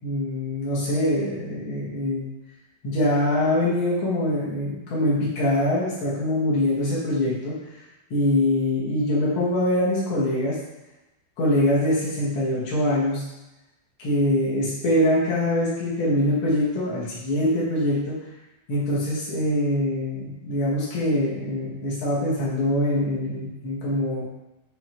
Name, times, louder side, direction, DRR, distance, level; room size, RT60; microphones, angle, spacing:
voice 1, 0.0-2.3 2.8-7.6 8.1-10.6 11.4-13.2 14.0-18.2 18.7-24.2, left 1 dB, 85° left, -7 dB, 1.1 m, -23 dB
8.6 x 3.6 x 4.6 m, 0.98 s
omnidirectional pair, 5.7 m